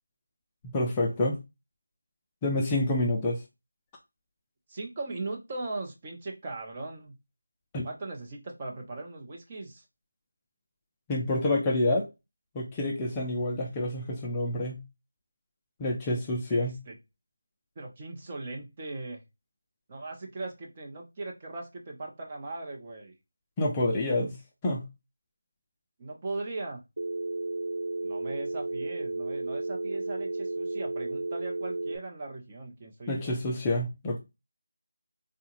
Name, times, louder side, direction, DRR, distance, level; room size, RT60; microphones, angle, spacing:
voice 1, 0.6-1.4 2.4-3.4 7.7-7.9 11.1-12.1 12.5-14.8 15.8-16.8 23.6-24.4 24.6-24.9 33.1-34.2, left 1 dB, 15° left, 0.4 m, -28 dB
voice 2, 4.7-7.2 7.8-9.8 16.5-17.0 17.8-19.2 19.9-23.1 26.0-26.8 28.0-33.4, right 2 dB, 25° right, 0.7 m, -39 dB
Telephone, 27.0-32.0, right 2 dB, 70° right, 0.4 m, -33 dB
3.7 x 2.3 x 2.9 m
figure-of-eight pair, 170°, 0 cm